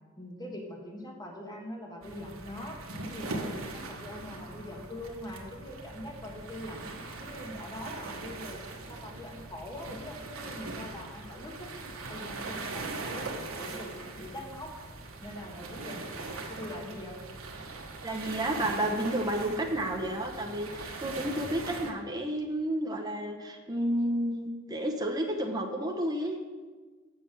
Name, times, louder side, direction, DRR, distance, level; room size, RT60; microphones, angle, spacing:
voice 1, 0.2-6.8 7.2-8.6 8.9-11.7 12.1-13.3 13.6-14.7 15.2-17.2, left 1 dB, 20° left, 0 dB, 1.3 m, -43 dB
sound 1, 2.0-21.9, right 3 dB, 80° right, 1.2 m, -41 dB
voice 2, 18.0-26.4, right 1 dB, 20° right, 1 dB, 0.8 m, -31 dB
7.5 x 5.9 x 7.4 m, 1.4 s
head